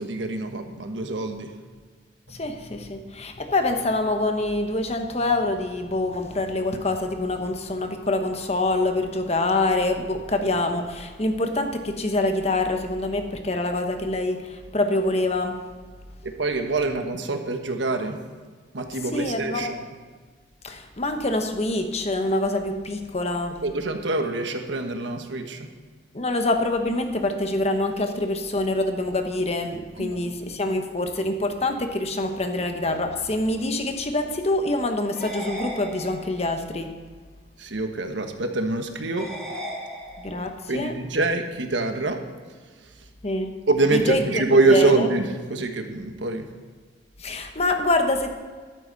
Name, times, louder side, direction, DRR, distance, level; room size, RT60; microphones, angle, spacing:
voice 1, 0.0-1.5 16.2-18.2 18.7-19.8 23.6-25.7 30.0-30.3 37.6-39.3 40.7-42.2 43.7-46.5, right 2 dB, 90° right, 5 dB, 1.3 m, -25 dB
voice 2, 2.3-15.6 19.1-19.7 20.6-23.6 26.1-36.9 40.2-40.9 43.2-43.5 44.1-44.4 44.7-45.0 47.2-48.4, left 2 dB, 35° left, 5 dB, 1.1 m, -25 dB
sound 1, 35.1-36.6 39.2-40.6, equal, ahead, 3.4 m, -36 dB
13.5 x 12.0 x 4.1 m, 1.5 s
head